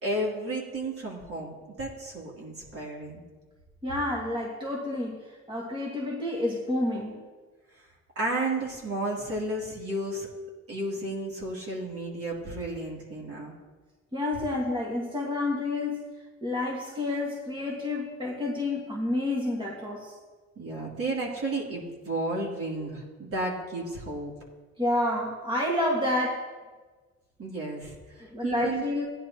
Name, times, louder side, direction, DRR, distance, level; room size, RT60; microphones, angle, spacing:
voice 1, 0.0-3.2 8.1-10.3 10.7-13.5 20.6-24.3 27.4-28.8, right 2 dB, 50° right, -3 dB, 3.0 m, -32 dB
voice 2, 3.8-7.2 14.1-16.0 16.4-20.2 24.8-26.5 28.2-29.1, left 1 dB, 15° right, -2 dB, 1.7 m, -29 dB
15.5 x 10.5 x 2.9 m, 1.4 s
cardioid pair, 90°, 30 cm